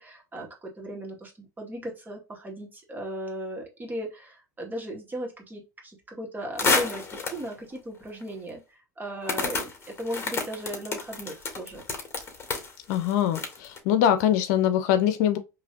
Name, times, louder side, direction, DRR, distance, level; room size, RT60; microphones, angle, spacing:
voice 1, 0.0-11.9 12.2-12.3, right 1 dB, 20° right, 2.2 m, -37 dB
sound 1, 6.6-7.5 8.2-8.3 9.3-13.8, left 4 dB, 30° left, 2.2 m, -29 dB
voice 2, 12.9-15.4, left 10 dB, 70° left, 0.7 m, -23 dB
4.9 x 3.2 x 2.8 m
hypercardioid pair, 85°, 9 cm